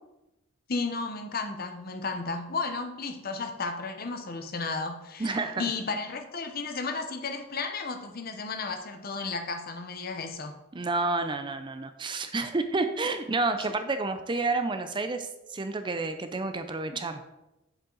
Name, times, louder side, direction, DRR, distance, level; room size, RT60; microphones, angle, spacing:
voice 1, 0.7-10.6, left 4 dB, 45° left, 7 dB, 0.8 m, -33 dB
voice 2, 5.2-5.6 10.7-17.3, right 3 dB, 25° right, 9 dB, 0.5 m, -30 dB
7.5 x 7.5 x 3.9 m, 0.94 s
head